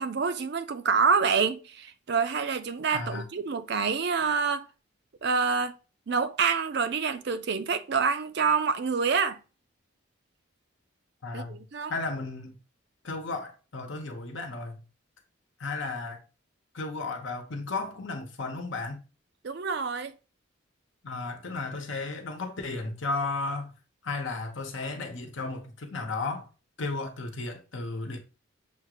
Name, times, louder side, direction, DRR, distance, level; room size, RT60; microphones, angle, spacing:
voice 1, 0.0-4.6 5.2-5.8 6.1-9.4 11.3-11.9 19.4-20.1, right 5 dB, 55° right, 0.4 m, -27 dB
voice 2, 2.9-3.2 11.2-11.6 11.9-12.5 13.0-14.8 15.6-16.2 16.7-19.0 21.0-23.7 24.0-26.5 26.8-28.2, left 3 dB, 65° left, 0.9 m, -34 dB
7.0 x 2.5 x 2.9 m
head